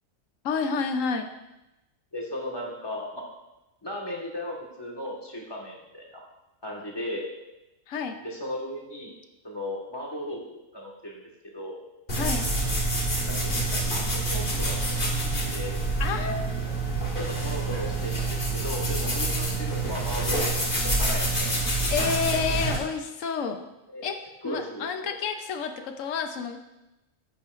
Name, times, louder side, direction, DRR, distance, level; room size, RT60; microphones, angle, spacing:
voice 1, 0.4-1.3 7.9-8.2 12.1-12.5 16.0-16.7 21.9-23.7 24.0-24.2 24.4-26.6, left 5 dB, 70° left, 7 dB, 1.1 m, -29 dB
voice 2, 2.1-3.2 3.8-6.2 6.6-7.3 8.2-9.1 9.4-11.2 11.5-11.8 13.2-15.8 17.2-20.7 21.0-21.5 23.9-24.1 24.4-25.1, left 1 dB, 20° left, -2 dB, 1.5 m, -36 dB
sound 1, 12.1-22.8, right 2 dB, 40° left, 1.8 m, -27 dB
9.9 x 8.6 x 2.5 m, 0.97 s
omnidirectional pair, 1.4 m